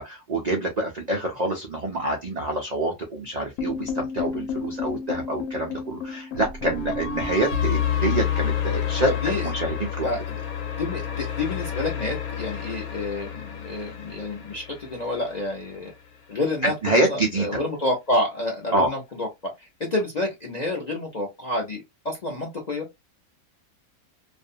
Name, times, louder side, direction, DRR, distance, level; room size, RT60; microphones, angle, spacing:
voice 1, 0.0-10.1 16.6-17.6 18.7-18.9, right 1 dB, 85° right, 0.3 m, -26 dB
sound 1, 3.6-15.8, left 8 dB, 85° left, 1.1 m, -30 dB
voice 2, 9.1-9.5 10.0-10.2 10.8-15.9 16.3-22.9, left 2 dB, 45° left, 0.5 m, -29 dB
2.5 x 2.2 x 2.6 m
omnidirectional pair, 1.5 m